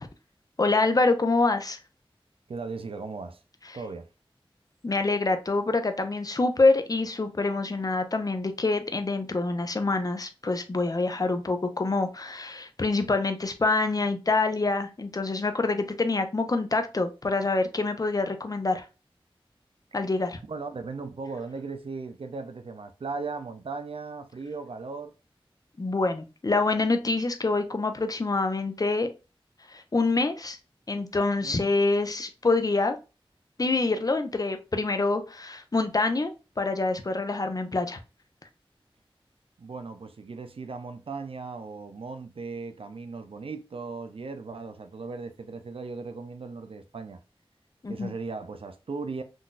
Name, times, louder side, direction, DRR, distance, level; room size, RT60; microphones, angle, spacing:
voice 1, 0.6-1.8 4.8-18.8 19.9-20.4 25.8-29.1 29.7-30.6 30.9-33.0 33.6-38.0 47.8-48.1, left 3 dB, 40° left, 0.5 m, -26 dB
voice 2, 2.5-3.4 3.7-4.1 20.5-25.1 31.4-31.6 39.6-47.2 47.9-49.2, right 4 dB, 70° right, 0.4 m, -37 dB
3.8 x 2.5 x 2.3 m
wide cardioid pair, 50°, 10 cm